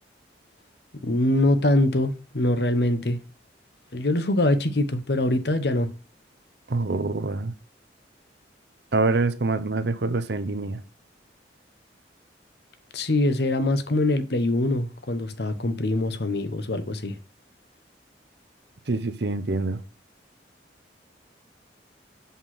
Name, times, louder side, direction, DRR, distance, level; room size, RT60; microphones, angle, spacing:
voice 1, 1.0-3.2 3.9-5.9 12.9-17.2, left 1 dB, 65° left, 1.0 m, -23 dB
voice 2, 6.7-7.5 8.9-10.8 18.9-19.8, right 3 dB, 70° right, 0.8 m, -25 dB
5.9 x 5.6 x 6.0 m
head